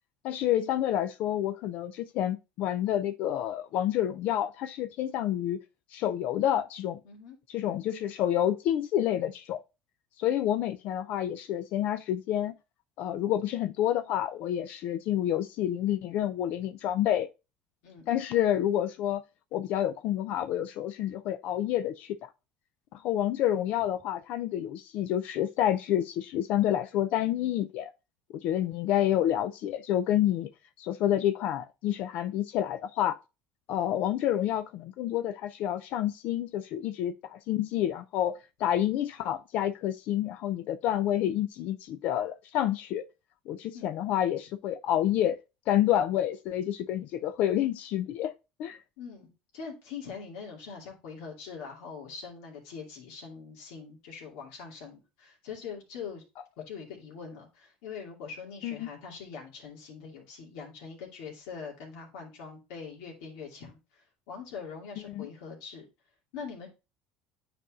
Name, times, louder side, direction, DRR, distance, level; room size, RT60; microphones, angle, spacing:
voice 1, 0.2-5.6 5.9-7.0 7.5-9.6 10.2-12.6 13.0-17.3 18.1-19.2 19.5-22.3 22.9-27.9 28.3-30.5 30.8-33.2 33.7-43.0 43.5-45.4 45.7-48.3 48.6-48.8 58.6-58.9 65.1-65.3, left 11 dB, 65° left, 0.4 m, -28 dB
voice 2, 7.0-7.4 17.8-18.1 43.7-43.9 49.0-56.2 56.7-65.8 66.3-66.7, left 6 dB, 85° left, 2.4 m, -43 dB
10.0 x 4.2 x 2.5 m
supercardioid pair, 110°, 3 cm